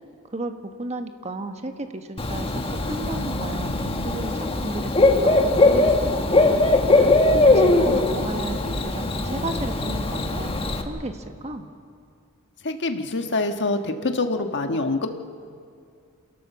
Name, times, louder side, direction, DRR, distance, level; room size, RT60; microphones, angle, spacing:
voice 1, 0.3-6.7 7.3-11.7, right 2 dB, 30° right, 6 dB, 1.3 m, -34 dB
Bird / Cricket, 2.2-10.8, left 2 dB, 25° left, 1.4 m, -20 dB
voice 2, 12.6-15.2, left 2 dB, 55° left, 6 dB, 1.4 m, -25 dB
28.0 x 17.5 x 7.2 m, 2.3 s
head